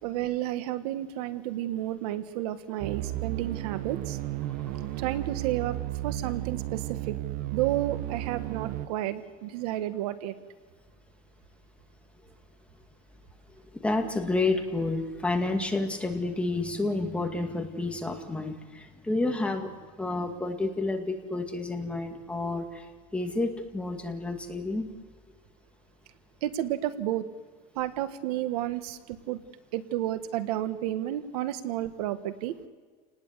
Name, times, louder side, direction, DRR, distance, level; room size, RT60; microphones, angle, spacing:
voice 1, 0.0-4.2 5.0-5.8 6.0-7.2 7.5-10.3 26.4-27.3 27.7-29.4 29.7-32.5, right 13 dB, 90° right, 10 dB, 1.6 m, -31 dB
sound 1, 2.8-8.9, right 15 dB, 45° right, 1.0 m, -34 dB
voice 2, 13.7-22.9 23.1-24.9, left 2 dB, 5° left, 3 dB, 2.3 m, -30 dB
29.5 x 19.5 x 8.3 m, 1.5 s
cardioid pair, 165°, 19 cm